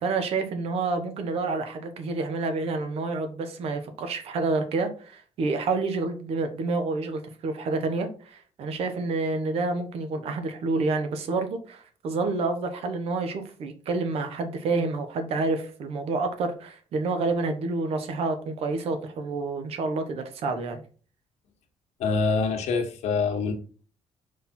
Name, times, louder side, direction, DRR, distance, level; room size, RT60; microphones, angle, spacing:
voice 1, 0.0-20.8, right 3 dB, 60° right, 7 dB, 1.4 m, -28 dB
voice 2, 22.0-23.5, left 4 dB, 85° left, 4 dB, 1.5 m, -25 dB
5.7 x 5.1 x 4.4 m, 0.40 s
cardioid pair, 175°, 11 cm